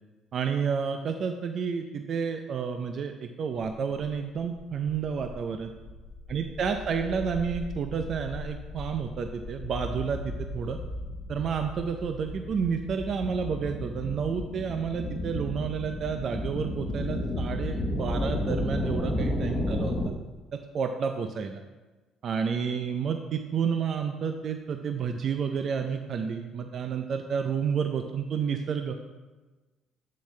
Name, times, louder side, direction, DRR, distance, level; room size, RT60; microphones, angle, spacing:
voice 1, 0.3-5.7 6.3-10.8 11.3-19.9 20.5-21.6 22.2-29.0, right 6 dB, 55° right, 6 dB, 0.5 m, -30 dB
sound 1, 4.3-20.1, left 1 dB, 40° left, 1.0 m, -34 dB
7.7 x 7.0 x 3.2 m, 1.2 s
supercardioid pair, 70°, 0 cm